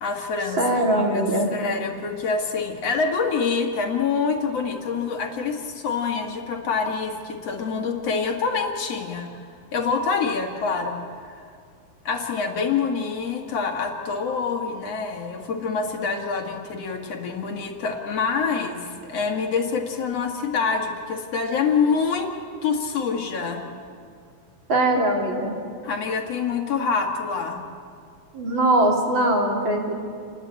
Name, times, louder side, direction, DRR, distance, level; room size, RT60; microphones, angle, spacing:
voice 1, 0.0-0.6 0.9-1.2 1.5-9.3 9.7-11.4 12.0-22.3 22.6-23.6 25.8-27.6, left 5 dB, 50° left, 2 dB, 2.3 m, -26 dB
voice 2, 0.6-1.5 24.7-25.5 28.3-29.9, right 1 dB, 30° right, 0 dB, 3.6 m, -21 dB
30.0 x 20.5 x 8.8 m, 2.3 s
omnidirectional pair, 4.9 m